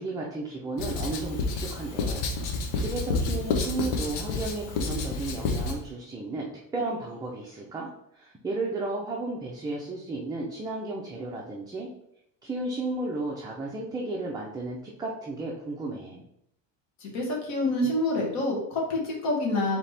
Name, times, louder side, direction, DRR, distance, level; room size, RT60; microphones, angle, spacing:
voice 1, 0.0-11.9 12.4-16.2, right 2 dB, 10° right, -3 dB, 0.5 m, -34 dB
Writing, 0.8-5.8, left 3 dB, 85° left, 0.8 m, -29 dB
voice 2, 17.0-19.8, left 1 dB, 50° left, -2 dB, 1.5 m, -27 dB
4.2 x 2.9 x 3.3 m, 0.75 s
cardioid pair, 140°, 35 cm